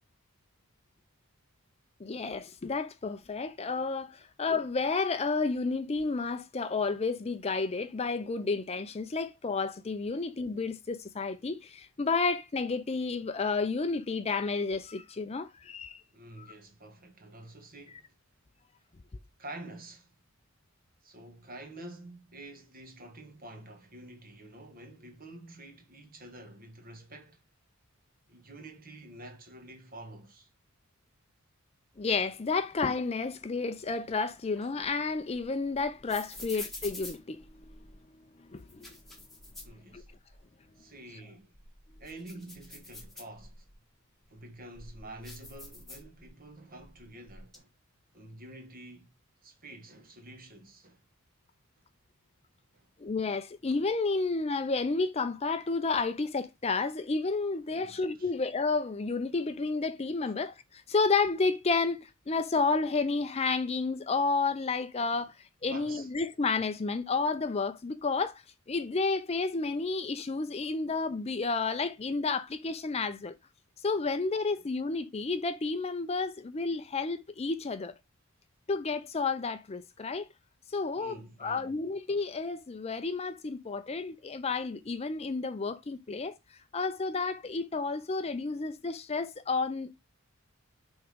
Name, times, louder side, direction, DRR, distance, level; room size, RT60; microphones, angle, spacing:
voice 1, 2.0-16.0 16.4-16.5 32.0-37.4 38.5-38.9 39.9-40.0 53.0-65.3 65.6-73.4 73.8-77.9 78.7-80.3 80.7-86.4 86.7-89.9, left 4 dB, 30° left, 0.4 m, -31 dB
voice 2, 16.1-18.1 19.4-20.1 21.0-27.4 28.3-30.5 39.6-40.1 40.8-41.5 42.0-43.6 44.3-47.7 48.1-49.1 49.4-51.0 52.7-52.9 57.7-58.3 65.6-66.1 80.9-81.7, right 1 dB, 40° right, 1.5 m, -48 dB
sound 1, 34.6-38.0 38.6-40.4 40.8-40.9 41.4-43.8 44.3-46.5 46.8-47.6, left 2 dB, ahead, 1.6 m, -47 dB
5.8 x 3.7 x 5.2 m
head